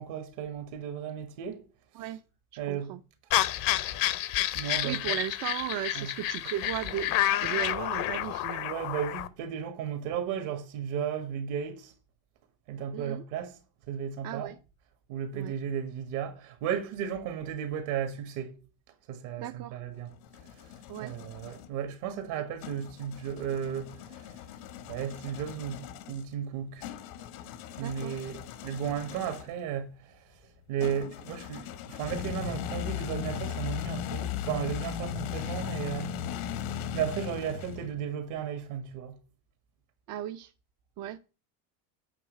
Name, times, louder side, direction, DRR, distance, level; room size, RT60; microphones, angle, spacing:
voice 1, 0.0-1.6 2.6-3.0 4.5-5.2 5.9-6.1 8.6-11.9 12.7-13.6 13.9-14.5 15.1-18.6 19.1-20.1 21.0-24.0 24.9-26.9 27.8-30.2 30.7-36.2 36.9-39.2, right 8 dB, 70° right, 1.7 m, -34 dB
voice 2, 2.5-3.0 4.6-8.7 12.9-13.2 14.2-14.6 15.3-15.5 19.4-19.8 20.9-21.2 22.4-22.5 27.8-28.2 40.1-40.5 41.0-41.2, right 12 dB, 50° right, 0.6 m, -36 dB
sound 1, 3.3-9.3, left 13 dB, 50° left, 0.7 m, -29 dB
sound 2, 19.9-21.7 22.6-29.6 30.8-38.1, left 8 dB, 75° left, 1.2 m, -38 dB
8.4 x 3.1 x 6.5 m
supercardioid pair, 105°, 45 cm